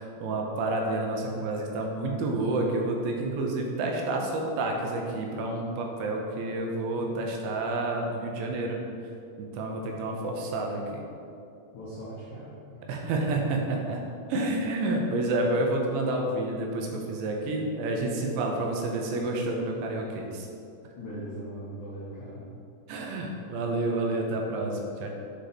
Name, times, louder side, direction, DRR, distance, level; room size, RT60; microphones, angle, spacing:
voice 1, 0.0-8.8 9.4-11.1 12.9-14.0 14.3-20.5 22.9-25.1, right 2 dB, 80° right, 0 dB, 2.9 m, -29 dB
voice 2, 11.7-12.5 21.0-22.4, right 1 dB, 75° left, -9 dB, 1.7 m, -39 dB
7.6 x 5.2 x 4.3 m, 2.6 s
omnidirectional pair, 5.5 m